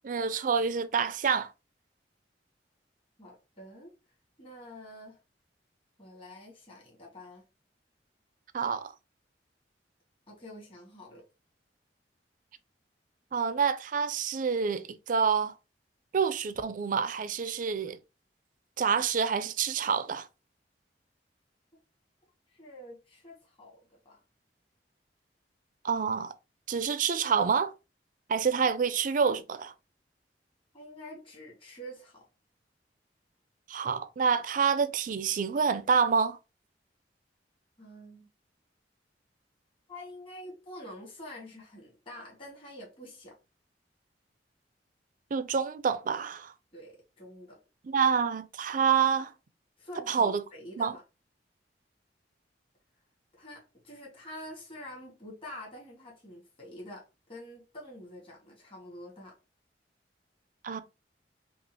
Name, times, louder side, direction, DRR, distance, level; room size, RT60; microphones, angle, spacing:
voice 1, 0.0-1.5 8.5-8.9 13.3-15.5 16.1-18.0 18.8-20.3 25.8-26.3 26.7-27.7 28.3-29.7 33.7-36.4 45.3-46.5 47.8-49.3 50.1-50.4 50.8-50.9 60.6-60.8, right 6 dB, 50° right, 0.4 m, -27 dB
voice 2, 3.2-3.9 4.4-5.2 6.0-7.4 10.3-11.2 22.5-24.2 30.7-32.3 37.8-38.3 39.9-43.4 46.7-47.6 49.8-51.0 53.3-59.3, left 1 dB, 30° left, 1.7 m, -47 dB
5.3 x 2.4 x 2.8 m
head